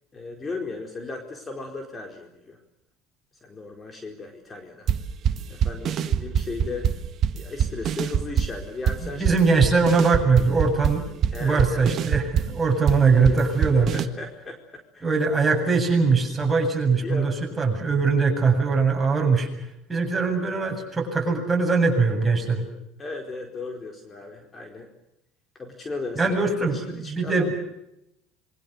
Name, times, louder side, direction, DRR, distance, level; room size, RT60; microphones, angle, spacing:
voice 1, 0.1-2.6 3.4-4.9 5.5-6.9 7.3-9.4 11.3-11.9 13.9-15.1 17.0-17.4 23.0-24.9 25.5-27.6, left 3 dB, 25° left, 4 dB, 4.5 m, -36 dB
sound 1, 4.9-14.1, right 8 dB, 45° right, 1.6 m, -25 dB
voice 2, 9.0-11.0 11.4-14.0 15.0-19.5 19.9-22.6 26.2-26.8 27.1-27.5, right 4 dB, 15° right, 2 dB, 7.9 m, -21 dB
27.0 x 23.5 x 6.8 m, 0.82 s
supercardioid pair, 110°, 0 cm